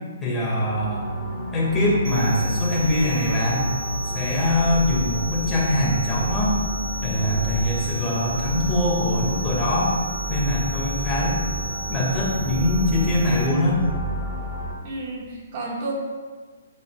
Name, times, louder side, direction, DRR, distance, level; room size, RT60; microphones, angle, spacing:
voice 1, 0.2-1.1 1.5-3.7 4.1-6.6 7.0-9.9 10.3-11.4 11.9-13.8, left 1 dB, 15° left, -6 dB, 2.6 m, -23 dB
sound 1, 0.7-14.7, right 1 dB, 5° right, 2.6 m, -30 dB
sound 2, 2.0-13.5, right 2 dB, 85° right, 1.3 m, -35 dB
voice 2, 14.8-15.9, right 2 dB, 40° right, -3 dB, 2.3 m, -31 dB
9.1 x 8.3 x 2.6 m, 1.4 s
hypercardioid pair, 145°, 0 cm